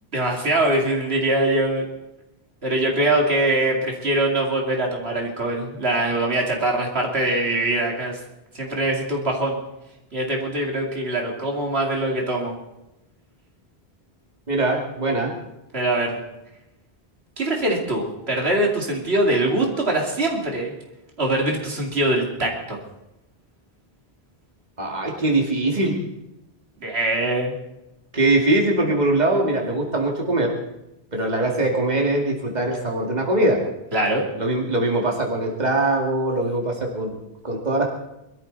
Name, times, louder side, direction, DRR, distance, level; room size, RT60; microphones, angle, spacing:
voice 1, 0.1-1.8 2.6-8.2 8.5-9.6 10.1-12.5 15.7-16.2 17.4-20.7 21.2-22.8 26.8-27.5 33.9-34.2, right 1 dB, 85° right, 0 dB, 2.8 m, -23 dB
voice 2, 14.5-15.3 24.8-25.9 28.1-30.5 31.1-33.6 34.4-37.1 37.4-37.8, right 2 dB, 45° right, 0 dB, 2.4 m, -22 dB
23.0 x 13.0 x 4.1 m, 0.91 s
omnidirectional pair, 1.0 m